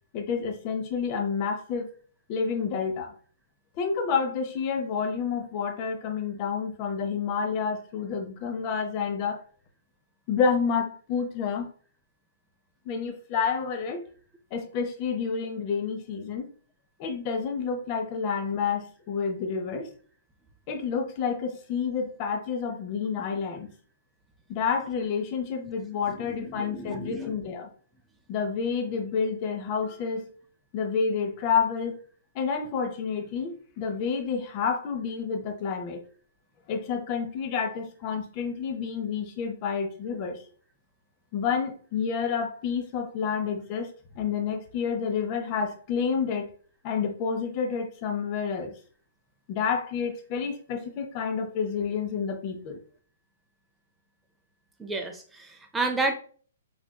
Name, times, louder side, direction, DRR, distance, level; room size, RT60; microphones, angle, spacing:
voice 1, 0.1-1.9 2.3-3.1 3.8-9.4 10.3-11.7 12.9-14.0 14.5-16.5 17.0-19.9 20.7-23.7 24.5-27.7 28.3-30.3 30.7-32.0 32.3-36.0 36.7-40.4 41.3-46.5 46.8-48.7 49.5-52.8, left 6 dB, 35° left, 0.8 m, -29 dB
voice 2, 26.1-27.3 54.8-56.2, right 3 dB, 10° right, 0.6 m, -31 dB
4.9 x 3.4 x 2.3 m
figure-of-eight pair, 120°, 0 cm